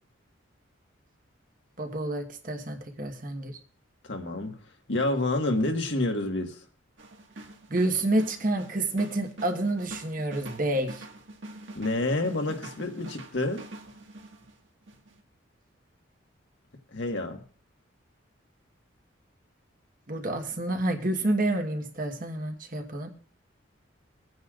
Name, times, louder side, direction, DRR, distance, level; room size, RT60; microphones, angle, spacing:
voice 1, 1.8-3.5 7.7-11.0 20.1-23.1, right 1 dB, 45° right, 1.3 m, -29 dB
voice 2, 4.0-4.6 4.9-6.6 11.7-13.6 16.9-17.4, left 2 dB, 65° left, 1.6 m, -28 dB
sound 1, 7.0-14.6 14.9-15.2, right 2 dB, 70° right, 1.7 m, -45 dB
20.0 x 9.4 x 2.5 m
head